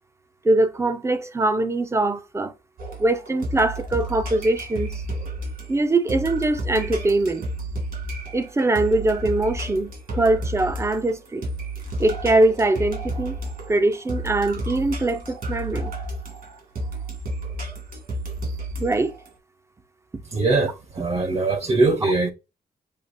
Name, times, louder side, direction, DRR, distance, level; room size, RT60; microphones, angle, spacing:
voice 1, 0.4-2.5 3.0-4.9 5.7-7.4 8.3-11.4 12.0-13.4 13.7-15.9 18.8-19.1 22.0-22.1, right 2 dB, 15° right, 0.5 m, -22 dB
sound 1, 2.8-19.3, right 1 dB, 65° right, 2.1 m, -32 dB
voice 2, 20.3-22.3, right 3 dB, 40° right, 0.9 m, -21 dB
6.7 x 2.9 x 2.6 m
wide cardioid pair, 145°, 16 cm